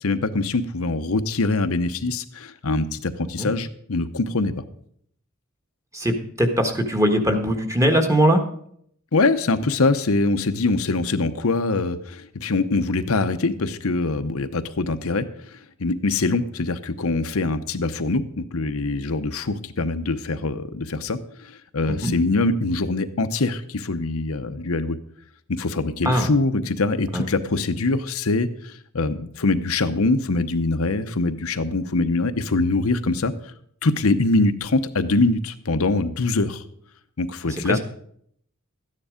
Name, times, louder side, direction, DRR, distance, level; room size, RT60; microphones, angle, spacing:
voice 1, 0.0-4.5 9.1-15.3 15.5-25.0 25.5-33.3 33.8-36.6 37.2-37.8, left 3 dB, 90° left, 9 dB, 0.9 m, -23 dB
voice 2, 5.9-8.4 21.9-22.1 26.0-26.3 27.1-27.3 37.6-37.8, equal, 15° right, 4 dB, 1.4 m, -21 dB
13.5 x 9.8 x 5.1 m, 0.66 s
head